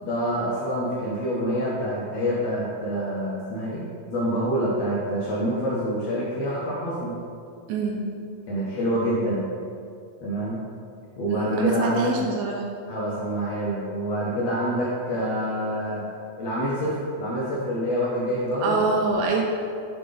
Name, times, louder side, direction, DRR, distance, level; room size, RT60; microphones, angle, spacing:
voice 1, 0.0-3.8 4.1-7.1 8.5-9.4 10.2-10.6 11.2-12.1 12.9-16.0 16.4-18.8, equal, 90° left, -8 dB, 1.4 m, -26 dB
voice 2, 11.3-12.6 18.6-19.4, right 4 dB, 80° right, 0 dB, 2.0 m, -25 dB
6.8 x 3.8 x 3.8 m, 2.3 s
omnidirectional pair, 4.3 m